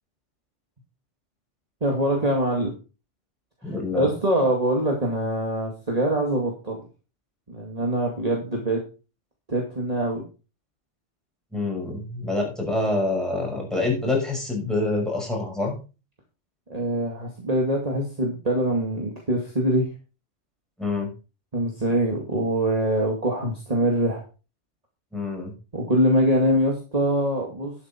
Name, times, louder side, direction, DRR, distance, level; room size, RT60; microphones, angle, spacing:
voice 1, 1.8-2.7 3.7-6.8 7.5-8.8 9.5-10.2 16.7-19.9 21.5-24.2 25.7-27.7, right 1 dB, 30° right, -1 dB, 2.4 m, -24 dB
voice 2, 3.6-4.1 11.5-15.8 20.8-21.1 25.1-25.5, left 2 dB, ahead, -1 dB, 5.8 m, -26 dB
11.5 x 8.5 x 4.5 m, 0.33 s
omnidirectional pair, 1.2 m